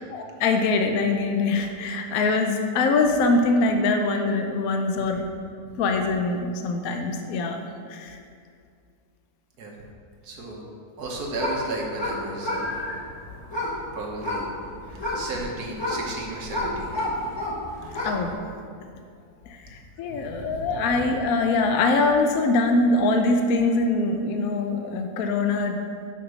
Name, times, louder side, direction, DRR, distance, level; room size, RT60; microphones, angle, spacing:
voice 1, 0.1-5.2 5.8-7.6 7.9-8.2 18.0-18.3 19.5-25.8, left 3 dB, 70° left, 5 dB, 1.0 m, -23 dB
voice 2, 10.2-10.6 11.0-12.9 13.9-14.5 14.9-16.9 17.8-18.0 20.1-20.6, right 2 dB, 80° right, -1 dB, 1.7 m, -34 dB
sound 1, 11.0-18.3, left 1 dB, 20° left, 1.1 m, -31 dB
5.8 x 5.7 x 6.3 m, 2.2 s
omnidirectional pair, 1.6 m